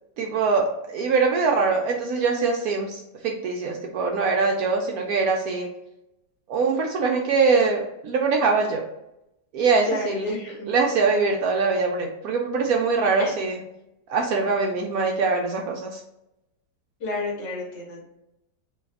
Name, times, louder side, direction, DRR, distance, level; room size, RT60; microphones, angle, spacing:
voice 1, 0.2-5.7 6.5-8.8 9.5-10.3 10.7-13.6 14.1-16.0, right 4 dB, 70° right, 1 dB, 0.8 m, -23 dB
voice 2, 9.9-10.7 13.2-13.3 17.0-18.0, left 2 dB, 70° left, -3 dB, 1.9 m, -30 dB
3.4 x 2.3 x 3.2 m, 0.86 s
omnidirectional pair, 1.9 m